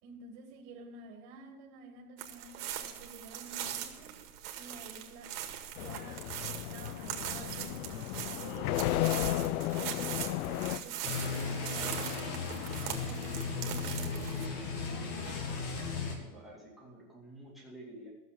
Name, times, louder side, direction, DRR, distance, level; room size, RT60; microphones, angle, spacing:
voice 1, 0.0-4.2 4.5-5.4 5.8-9.2 9.5-14.5, right 3 dB, 35° right, 2.1 m, -50 dB
sound 1, 2.2-14.5, right 10 dB, 70° right, 2.0 m, -41 dB
sound 2, 5.8-10.8, left 14 dB, 65° left, 0.6 m, -34 dB
sound 3, 11.0-16.2, left 5 dB, 45° left, 2.3 m, -36 dB
voice 2, 16.2-18.1, right 1 dB, ahead, 2.3 m, -50 dB
14.0 x 7.4 x 6.9 m
supercardioid pair, 170°, 48 cm